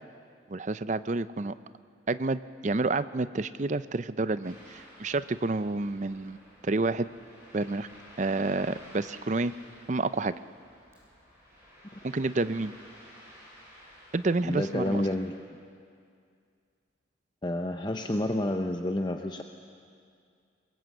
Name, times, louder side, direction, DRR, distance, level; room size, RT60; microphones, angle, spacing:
voice 1, 0.5-1.6 2.1-6.4 6.6-7.1 7.5-7.9 8.2-9.5 9.9-10.3 12.0-12.7 14.1-15.0, right 3 dB, 40° right, 14 dB, 0.5 m, -29 dB
Ocean, 4.4-15.3, equal, 15° right, 7.6 m, -53 dB
voice 2, 14.4-15.3 17.4-19.4, left 1 dB, 25° left, 5 dB, 0.7 m, -29 dB
22.5 x 22.0 x 7.8 m, 2.3 s
head